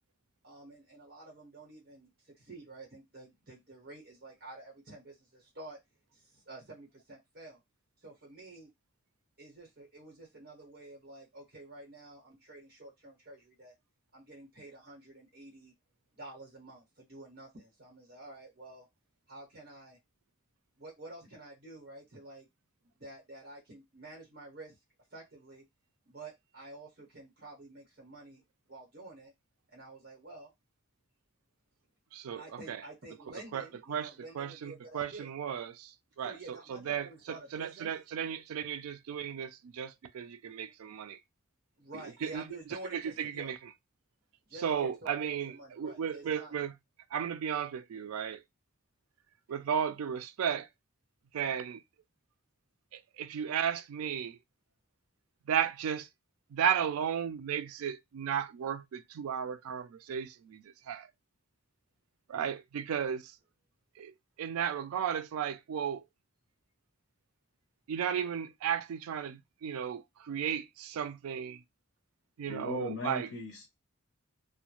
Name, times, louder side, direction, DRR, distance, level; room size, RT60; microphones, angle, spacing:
voice 1, 0.4-5.8 6.1-7.6 8.0-8.7 9.4-13.7 14.1-15.7 16.2-18.9 19.3-20.0 20.8-22.5 23.0-24.7 25.1-25.6 26.1-28.4 28.7-29.3 29.7-30.5 32.4-35.3 36.2-37.9 41.8-43.5 44.5-46.6, right 2 dB, 45° right, 0.9 m, -49 dB
voice 2, 32.1-32.8 33.5-35.9 36.2-37.1 37.5-41.2 42.2-42.4 42.9-43.6 44.6-46.7 47.1-48.4 49.5-50.7 51.3-51.8 52.9-54.4 55.5-56.1 56.5-61.1 62.3-63.3 64.0-66.0 67.9-71.6 72.4-73.3, right 8 dB, 90° right, 0.3 m, -34 dB
voice 3, 72.4-73.7, left 3 dB, 85° left, 0.6 m, -38 dB
2.2 x 2.1 x 2.9 m
head